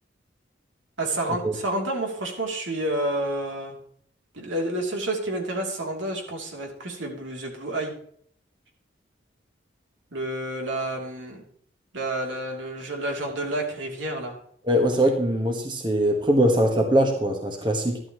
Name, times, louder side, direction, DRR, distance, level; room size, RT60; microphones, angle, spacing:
voice 1, 1.0-3.8 4.3-7.9 10.1-11.4 11.9-14.4, right 1 dB, 75° right, 1 dB, 3.1 m, -29 dB
voice 2, 14.7-18.0, equal, 25° right, 3 dB, 1.4 m, -22 dB
13.0 x 12.5 x 3.1 m, 0.63 s
head